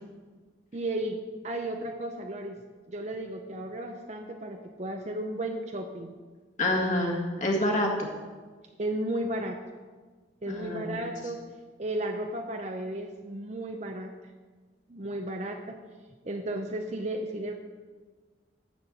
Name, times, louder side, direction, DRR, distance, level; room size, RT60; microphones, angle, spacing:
voice 1, 0.7-1.2 1.4-2.6 2.9-6.1 8.8-9.6 10.4-11.4 11.8-14.1 14.9-15.8 16.2-17.5, right 1 dB, 35° right, 4 dB, 0.7 m, -34 dB
voice 2, 6.6-8.1 10.5-11.1, left 1 dB, 40° left, -1 dB, 1.8 m, -27 dB
12.5 x 4.5 x 8.0 m, 1.4 s
head